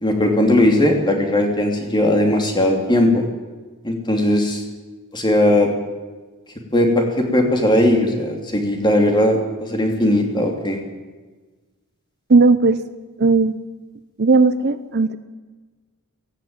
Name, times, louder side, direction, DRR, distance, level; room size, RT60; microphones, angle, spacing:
voice 1, 0.0-3.2 3.8-4.6 5.1-5.7 6.7-10.8, left 1 dB, 20° left, 2 dB, 3.3 m, -18 dB
voice 2, 12.3-12.8 13.2-13.6 14.2-15.2, right 3 dB, 50° right, 12 dB, 0.8 m, -15 dB
17.0 x 17.0 x 9.0 m, 1.3 s
head